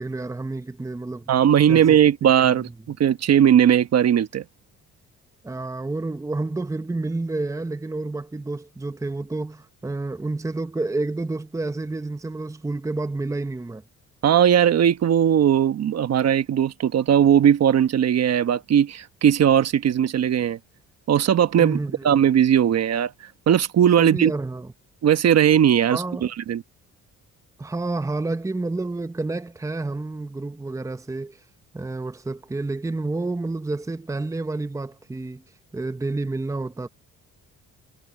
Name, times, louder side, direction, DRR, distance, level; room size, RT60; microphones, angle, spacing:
voice 1, 0.0-1.3 1.7-2.0 2.4-2.7 5.4-13.8 21.6-22.1 24.0-24.7 25.9-26.3 27.6-31.4 31.7-35.4 35.7-36.9, right 2 dB, 10° right, 0.8 m, -29 dB
voice 2, 1.3-4.4 14.2-20.6 21.1-21.8 22.0-23.1 23.5-24.3 25.0-26.6, right 9 dB, 55° right, 1.2 m, -18 dB
cardioid pair, 90°, 30 cm